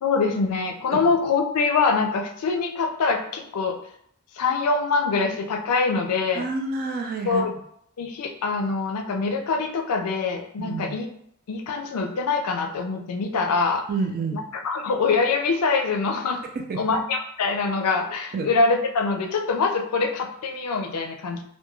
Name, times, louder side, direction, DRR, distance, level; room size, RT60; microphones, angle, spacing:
voice 1, 0.0-3.8 4.4-6.5 7.3-7.5 8.0-11.1 11.5-13.9 14.3-16.4 16.7-21.4, left 4 dB, 85° left, 4 dB, 0.4 m, -24 dB
voice 2, 6.3-7.5 10.6-11.0 13.9-14.4 16.7-16.8 18.3-18.5, right 4 dB, 40° right, 3 dB, 0.4 m, -28 dB
2.3 x 2.2 x 3.0 m, 0.67 s
head